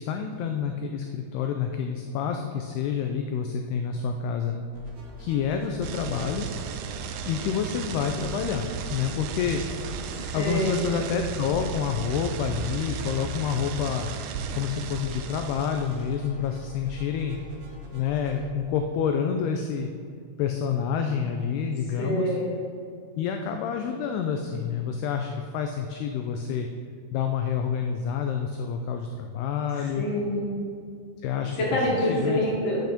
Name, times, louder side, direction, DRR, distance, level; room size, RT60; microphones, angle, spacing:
voice 1, 0.0-4.6 5.2-6.5 7.2-9.6 10.3-14.1 14.5-17.4 17.9-19.9 20.4-22.3 23.2-26.7 27.1-30.0 31.2-31.6 32.1-32.4, left 7 dB, 80° left, 5 dB, 2.4 m, -28 dB
sound 1, 4.7-18.4, equal, 35° right, 2.1 m, -43 dB
sound 2, 5.8-16.1, right 6 dB, 85° right, 2.5 m, -35 dB
voice 2, 10.2-10.7 22.0-22.4 29.7-30.6 31.6-32.8, equal, 35° left, -6 dB, 2.7 m, -26 dB
9.3 x 8.0 x 5.1 m, 2.2 s
omnidirectional pair, 5.0 m